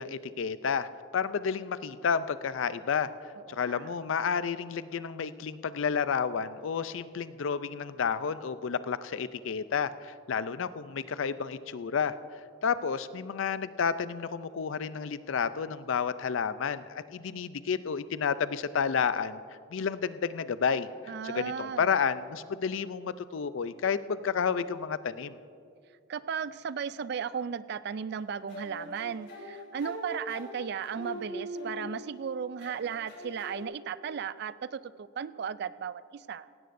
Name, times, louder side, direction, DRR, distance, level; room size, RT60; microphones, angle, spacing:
voice 1, 0.0-12.2 12.6-19.4 19.7-25.4, left 6 dB, 75° left, 14 dB, 0.4 m, -31 dB
voice 2, 3.4-3.9 21.1-21.9 26.1-36.5, right 7 dB, 55° right, 16 dB, 0.3 m, -36 dB
sound 1, 28.5-32.2 32.6-33.6, left 1 dB, 55° left, 3.2 m, -42 dB
17.0 x 16.0 x 2.6 m, 2.3 s
head